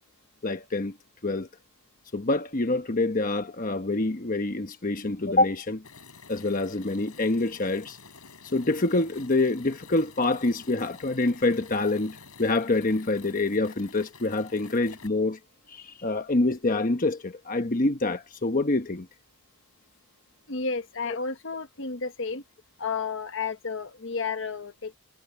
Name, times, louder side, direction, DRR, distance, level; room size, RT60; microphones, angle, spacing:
voice 1, 0.4-0.9 1.2-1.5 2.1-5.8 6.3-8.0 8.4-15.4 15.7-19.1, left 2 dB, 40° left, 1.1 m, -26 dB
sound 1, 5.8-15.1, left 5 dB, 85° left, 7.9 m, -49 dB
voice 2, 20.5-22.4 22.8-25.0, left 4 dB, 60° left, 1.3 m, -32 dB
head